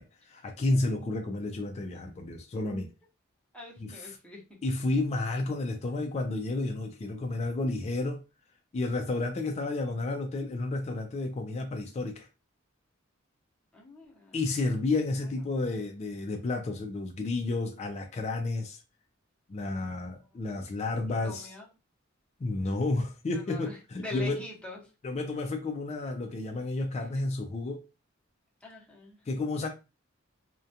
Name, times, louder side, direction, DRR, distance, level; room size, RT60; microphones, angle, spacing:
voice 1, 0.0-2.9 3.8-4.2 4.6-8.2 8.7-12.3 14.3-18.8 19.5-21.5 22.4-24.4 25.0-27.8 29.3-29.7, left 2 dB, 30° left, 0.3 m, -31 dB
voice 2, 3.5-4.4 13.7-14.4 19.7-20.4 21.2-21.7 23.3-24.8 27.0-27.2 28.6-29.2, left 2 dB, 5° left, 0.7 m, -44 dB
2.3 x 2.1 x 2.7 m
head